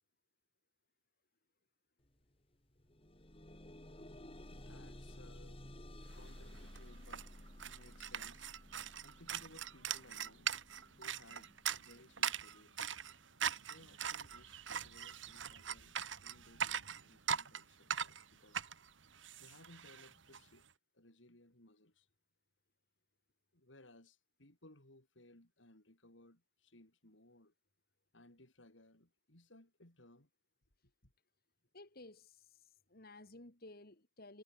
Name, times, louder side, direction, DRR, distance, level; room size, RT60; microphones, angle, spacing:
sound 1, 2.0-2.2 2.5-13.6 14.3-14.4 14.9-15.0, left 1 dB, 30° left, 3.4 m, -55 dB
voice 1, 3.2-12.9 13.7-18.7 19.4-20.7 20.9-22.1 23.5-27.5 28.1-30.3 30.8-31.1, left 1 dB, 75° left, 4.6 m, -63 dB
sound 2, 6.2-6.3 6.5-20.4, right 8 dB, 75° right, 1.7 m, -41 dB
voice 2, 31.7-34.4, left 2 dB, 55° left, 3.0 m, -56 dB
head